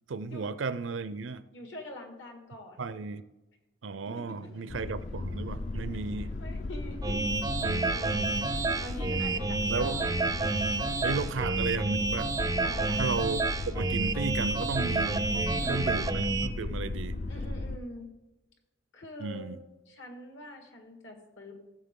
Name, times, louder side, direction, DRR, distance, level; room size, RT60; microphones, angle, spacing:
voice 1, 0.1-1.4 2.8-3.2 3.8-6.3 7.6-7.9 9.7-10.0 11.0-12.3 13.0-13.4 13.7-17.2 19.2-19.6, right 4 dB, 75° right, 0.5 m, -34 dB
voice 2, 1.5-2.8 4.0-4.5 6.4-7.3 7.9-8.3 8.8-10.3 12.6-13.0 15.6-16.0 17.3-18.1 18.9-19.5 19.9-21.6, left 1 dB, 65° left, 1.9 m, -44 dB
sound 1, 4.2-11.8, left 2 dB, 90° left, 1.3 m, -53 dB
sound 2, 4.7-17.8, left 2 dB, 40° left, 0.4 m, -36 dB
sound 3, 7.0-16.5, right 3 dB, 20° right, 0.4 m, -29 dB
15.0 x 7.4 x 3.7 m
head